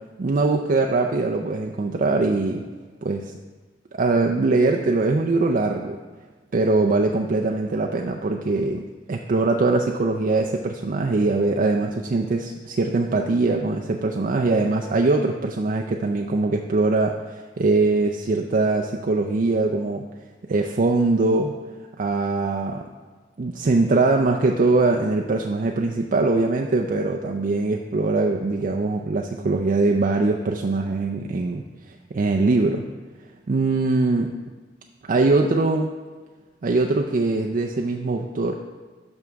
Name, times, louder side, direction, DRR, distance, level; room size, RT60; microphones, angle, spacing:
voice 1, 0.2-2.6 3.0-3.3 3.9-6.0 6.5-20.0 20.5-21.5 22.0-22.8 23.4-32.8 33.5-34.3 35.1-35.9 36.6-38.5, right 3 dB, 50° right, 2 dB, 0.4 m, -22 dB
11.0 x 6.0 x 3.5 m, 1.4 s
head